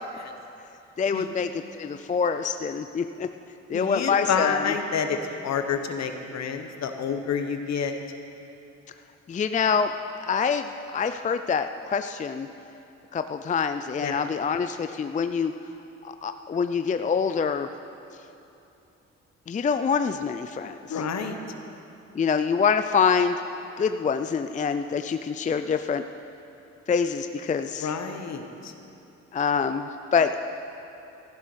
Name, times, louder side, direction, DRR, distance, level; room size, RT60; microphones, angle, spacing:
voice 1, 1.0-3.3 3.7-4.7 9.3-9.9 10.3-12.5 13.1-15.5 16.0-17.7 19.5-21.0 22.1-23.4 23.8-26.0 26.9-27.9 29.3-30.4, left 6 dB, 25° left, 9 dB, 0.4 m, -25 dB
voice 2, 3.7-5.2 5.4-7.9 14.0-14.2 20.9-21.4 27.8-28.7, left 6 dB, 60° left, 6 dB, 1.3 m, -28 dB
14.0 x 11.0 x 6.3 m, 2.8 s
cardioid pair, 90°, 30 cm